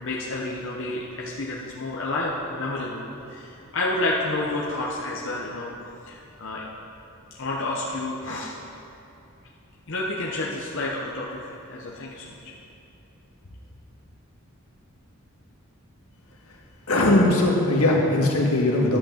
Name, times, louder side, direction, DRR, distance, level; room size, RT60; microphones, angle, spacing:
voice 1, 0.0-3.0 3.3-5.7 6.1-6.7 7.4-8.5 9.9-12.5, left 2 dB, 60° left, -4 dB, 1.0 m, -30 dB
voice 2, 16.9-19.0, left 1 dB, 85° left, -1 dB, 1.7 m, -20 dB
11.5 x 5.9 x 7.2 m, 2.8 s
head